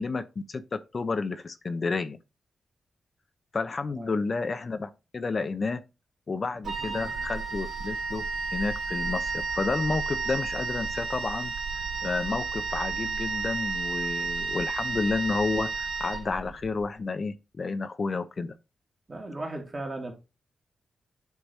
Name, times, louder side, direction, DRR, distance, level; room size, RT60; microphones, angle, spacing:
voice 1, 0.0-2.2 3.5-5.8 6.3-8.2 8.5-11.5 12.0-18.5, left 4 dB, 50° left, 0.7 m, -31 dB
voice 2, 3.9-4.3 6.6-7.3 19.1-20.1, right 2 dB, 40° right, 2.4 m, -38 dB
Wind instrument woodwind instrument, 6.6-16.7, right 4 dB, 70° right, 2.5 m, -32 dB
8.2 x 3.3 x 4.1 m
cardioid pair, 50°, 0 cm